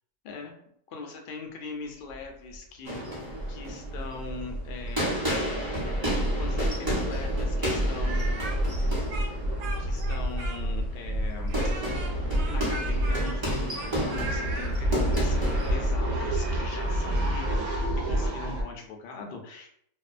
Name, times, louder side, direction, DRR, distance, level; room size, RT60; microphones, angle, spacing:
voice 1, 0.9-3.0 3.5-5.2 6.4-8.4 9.8-11.6 12.5-19.7, left 4 dB, 75° left, 2 dB, 0.5 m, -41 dB
sound 1, 2.1-2.2 2.5-2.6 2.9-18.6, equal, 65° right, 0.9 m, -29 dB
sound 2, 2.9-17.4, right 1 dB, 25° right, 0.5 m, -33 dB
Speech, 8.0-10.9 11.5-14.7, right 2 dB, 90° right, 1.1 m, -38 dB
2.6 x 2.1 x 2.4 m, 0.69 s
omnidirectional pair, 1.5 m